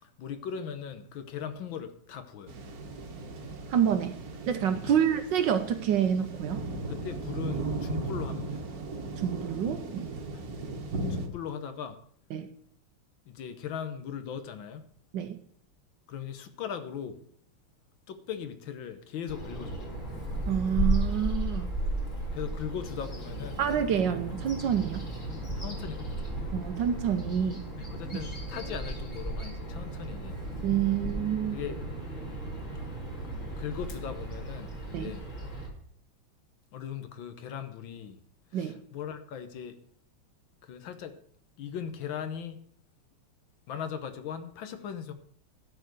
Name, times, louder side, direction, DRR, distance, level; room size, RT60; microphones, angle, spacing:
voice 1, 0.0-2.5 4.8-5.0 6.9-8.6 10.3-10.5 11.1-12.0 13.3-14.8 16.1-17.2 18.1-19.8 22.3-23.6 23.9-24.2 25.6-26.5 27.8-30.4 31.5-31.9 33.6-35.3 36.7-38.2 38.5-39.8 40.6-41.2 41.6-42.6 43.7-45.1, left 8 dB, 70° left, 1.6 m, -39 dB
sound 1, 2.5-11.3, right 2 dB, 50° right, 1.5 m, -37 dB
voice 2, 3.7-4.2 4.5-6.7 9.2-10.1 12.3-12.5 15.1-15.4 20.5-21.7 23.6-25.0 26.5-27.6 30.6-31.6 34.9-35.1 38.5-38.8, right 9 dB, 65° right, 1.2 m, -28 dB
Bird vocalization bird call bird song, 19.3-35.7, right 1 dB, 35° left, 2.7 m, -35 dB
12.5 x 4.8 x 7.8 m
omnidirectional pair, 2.4 m